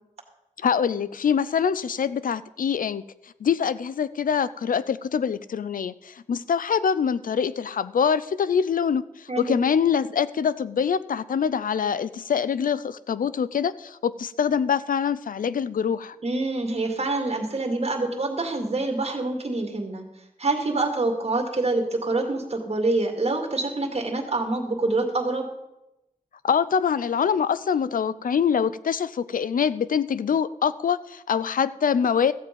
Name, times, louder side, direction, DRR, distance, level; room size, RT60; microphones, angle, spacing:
voice 1, 0.6-3.0 3.4-16.2 26.4-32.3, left 7 dB, 85° left, 16 dB, 0.5 m, -24 dB
voice 2, 9.3-9.6 16.2-20.0 20.4-25.5, right 2 dB, 50° right, 3 dB, 2.2 m, -26 dB
14.0 x 7.9 x 5.2 m, 0.90 s
wide cardioid pair, 70°, 14 cm